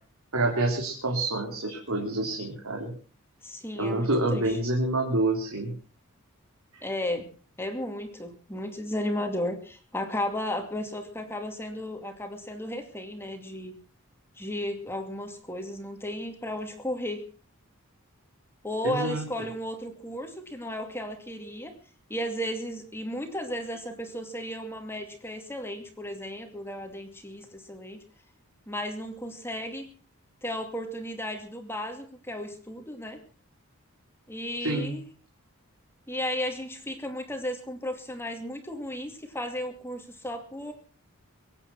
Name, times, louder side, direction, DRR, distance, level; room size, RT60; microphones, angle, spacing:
voice 1, 0.3-2.9 3.8-5.7 18.8-19.2 34.6-34.9, right 2 dB, 75° right, 1 dB, 3.5 m, -27 dB
voice 2, 3.4-4.6 6.8-7.3 7.6-13.8 14.4-17.2 18.6-21.7 22.1-28.0 28.7-29.9 30.4-33.2 34.3-35.0 36.1-40.7, left 1 dB, 10° left, 5 dB, 2.4 m, -34 dB
24.0 x 9.1 x 5.9 m, 0.41 s
head